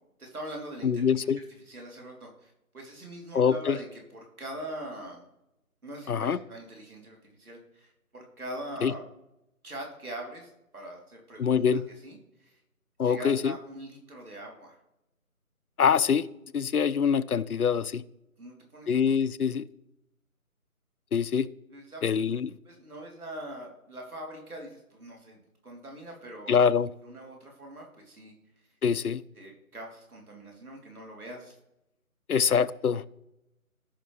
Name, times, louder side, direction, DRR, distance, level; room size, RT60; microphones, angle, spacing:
voice 1, 0.2-1.3 1.7-5.2 5.8-9.0 9.6-11.6 12.0-12.6 13.0-14.8 18.4-18.9 21.7-22.0 22.6-26.6 27.0-28.3 29.4-31.6, right 1 dB, 75° right, 0 dB, 3.3 m, -42 dB
voice 2, 0.8-1.4 3.3-3.8 6.1-6.4 8.8-8.9 11.4-11.8 13.0-13.5 15.8-16.3 16.5-18.0 18.9-19.6 21.1-21.5 22.0-22.5 26.5-26.9 28.8-29.2 32.3-33.0, left 7 dB, 75° left, 16 dB, 0.6 m, -24 dB
15.0 x 5.7 x 3.2 m, 0.87 s
figure-of-eight pair, 165°, 44 cm